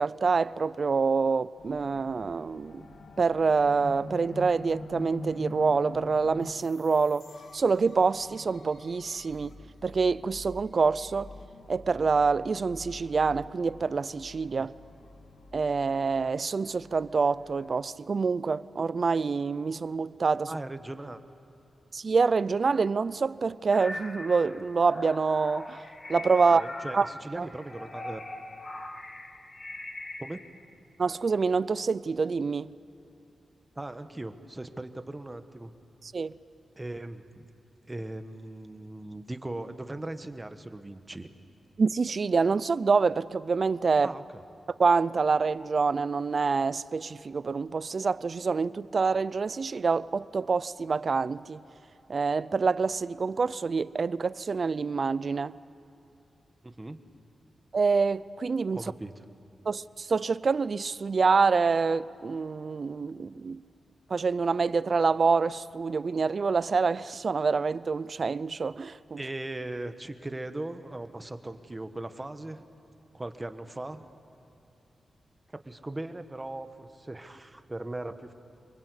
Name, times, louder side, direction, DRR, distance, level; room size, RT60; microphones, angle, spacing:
voice 1, 0.0-2.9 3.2-9.5 9.8-11.3 11.7-14.7 15.5-20.5 21.9-25.8 26.1-26.6 26.9-27.1 27.4-27.5 31.0-32.7 36.0-36.4 41.8-44.1 44.8-51.6 52.1-55.6 57.7-58.9 59.7-63.6 64.1-69.2, right 4 dB, 50° right, 0.5 m, -26 dB
sound 1, 1.6-17.8, left 2 dB, 80° left, 1.7 m, -45 dB
voice 2, 20.5-21.2 26.4-28.2 30.2-30.4 33.7-35.7 36.8-37.5 37.9-41.3 44.0-44.2 56.6-57.0 58.7-59.2 69.2-72.7 73.1-74.0 75.5-78.3, right 2 dB, 20° right, 1.3 m, -39 dB
sound 2, 23.7-30.5, left 2 dB, 35° left, 1.9 m, -41 dB
25.5 x 23.0 x 8.2 m
wide cardioid pair, 100°, 0 cm